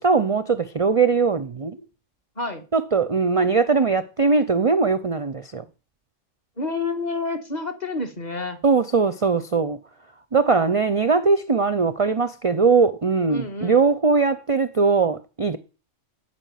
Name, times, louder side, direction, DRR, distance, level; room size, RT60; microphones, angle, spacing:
voice 1, 0.0-1.8 2.7-5.6 8.6-9.8 10.3-15.6, right 4 dB, 35° right, 0.5 m, -20 dB
voice 2, 2.4-2.7 6.6-8.6 13.3-13.8, left 3 dB, 35° left, 1.9 m, -29 dB
13.0 x 5.9 x 9.2 m
omnidirectional pair, 1.3 m